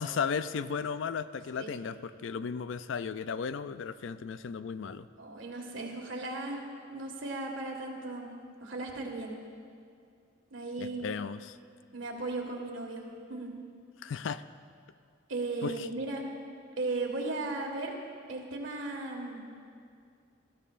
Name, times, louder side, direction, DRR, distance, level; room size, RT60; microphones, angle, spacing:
voice 1, 0.0-5.1 10.8-11.6 14.0-14.4 15.6-15.9, left 6 dB, 70° left, 13 dB, 0.4 m, -35 dB
voice 2, 5.2-6.6 6.9-8.3 8.6-9.4 10.5-11.1 11.9-13.0 13.3-13.5 15.3-16.2 16.8-17.9 18.3-19.5, right 2 dB, 80° right, 1 dB, 1.7 m, -36 dB
19.0 x 13.5 x 2.5 m, 2.3 s
head